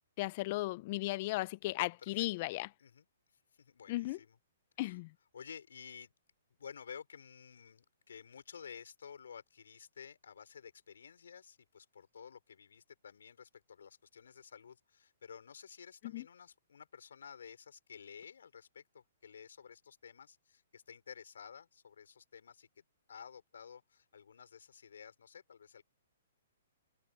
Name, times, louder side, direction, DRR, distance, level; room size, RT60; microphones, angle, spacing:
voice 1, 0.2-2.7 3.9-4.2 4.8-5.1 16.1-16.2, left 19 dB, 35° left, 0.4 m, -36 dB
voice 2, 3.5-4.4 4.8-5.0 5.3-6.1 6.6-22.8 23.1-25.8, left 7 dB, 85° left, 4.9 m, -53 dB
hypercardioid pair, 155°, 0 cm